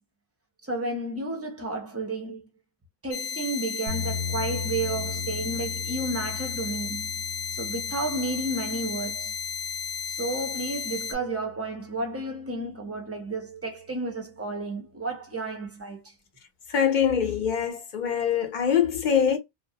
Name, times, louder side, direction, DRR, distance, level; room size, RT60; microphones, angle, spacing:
voice 1, 0.6-2.5 3.0-7.2 7.5-9.3 10.1-16.1, right 2 dB, 20° right, 0.4 m, -32 dB
sound 1, 3.1-11.1, left 6 dB, 85° left, 0.8 m, -33 dB
sound 2, 3.9-12.0, left 5 dB, 65° right, 0.7 m, -38 dB
voice 2, 16.7-19.4, left 8 dB, 55° left, 0.6 m, -23 dB
2.3 x 2.0 x 2.7 m
omnidirectional pair, 1.1 m